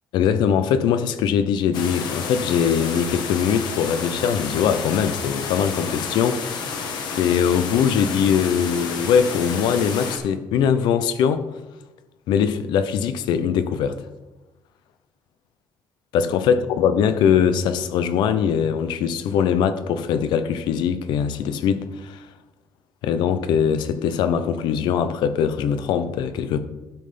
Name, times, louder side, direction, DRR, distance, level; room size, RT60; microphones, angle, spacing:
voice 1, 0.1-6.8 7.2-11.5 12.3-14.0 16.1-22.2 23.0-26.6, left 7 dB, 85° left, 0.8 m, -21 dB
sound 1, 1.7-10.2, left 5 dB, 70° left, 1.5 m, -30 dB
12.0 x 5.6 x 5.2 m
cardioid pair, 170°, 8 cm